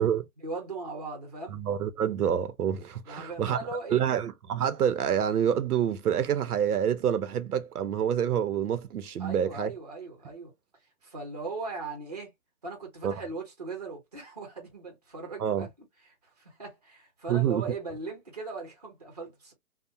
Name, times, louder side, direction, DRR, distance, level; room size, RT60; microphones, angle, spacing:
voice 1, 0.4-1.6 3.1-4.0 9.2-10.5 11.0-12.3 12.6-15.7 16.2-19.5, right 3 dB, 30° right, 0.6 m, -39 dB
voice 2, 1.5-9.7 13.0-13.1 15.4-15.7 17.3-17.6, right 9 dB, 85° right, 0.7 m, -27 dB
2.8 x 2.1 x 2.5 m
hypercardioid pair, 180°, 44 cm